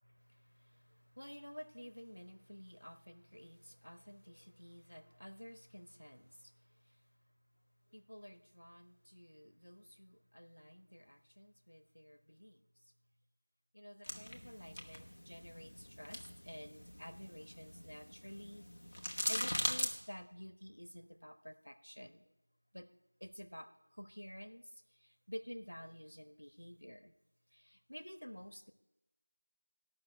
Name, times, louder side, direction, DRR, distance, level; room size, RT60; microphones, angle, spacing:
voice 1, 0.0-7.1 7.9-12.6 13.7-18.6 19.3-22.3 22.7-22.9 23.2-27.1 27.5-28.7, equal, 70° left, 10 dB, 1.1 m, -52 dB
sound 1, 14.0-19.9, left 1 dB, 30° left, 1.0 m, -41 dB
13.5 x 6.1 x 8.0 m, 0.98 s
figure-of-eight pair, 180°, 0 cm